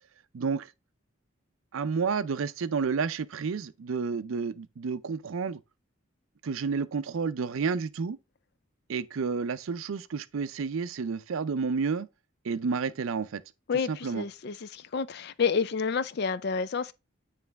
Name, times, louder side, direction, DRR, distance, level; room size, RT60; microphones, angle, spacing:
voice 1, 0.3-0.7 1.7-5.6 6.4-8.2 8.9-12.1 12.4-13.4 13.9-14.2, right 5 dB, 75° right, 0.4 m, -30 dB
voice 2, 13.7-16.9, left 5 dB, 50° left, 0.4 m, -29 dB
9.2 x 3.2 x 3.4 m
head